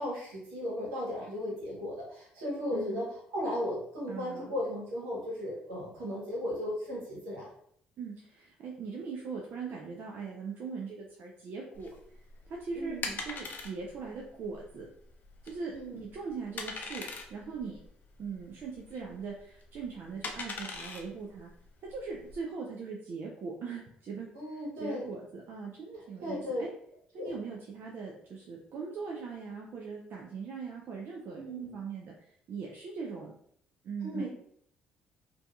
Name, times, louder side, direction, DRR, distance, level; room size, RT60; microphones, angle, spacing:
voice 1, 0.0-3.0 3.3-7.5 12.7-13.2 15.7-16.0 24.3-25.1 26.2-26.6 27.2-27.3 31.3-31.7 34.0-34.3, left 1 dB, 85° right, -4 dB, 1.1 m, -36 dB
voice 2, 2.7-3.0 4.1-4.5 8.0-11.9 12.5-13.0 13.2-14.9 15.4-15.7 16.0-17.0 17.3-17.8 18.2-21.5 21.8-26.7 27.1-31.5 31.7-32.1 32.5-33.3 33.8-34.3, right 5 dB, 60° right, -1 dB, 0.4 m, -40 dB
sound 1, 11.8-22.4, left 4 dB, 50° left, 0.5 m, -42 dB
2.6 x 2.3 x 2.3 m, 0.66 s
hypercardioid pair, 60°, 4 cm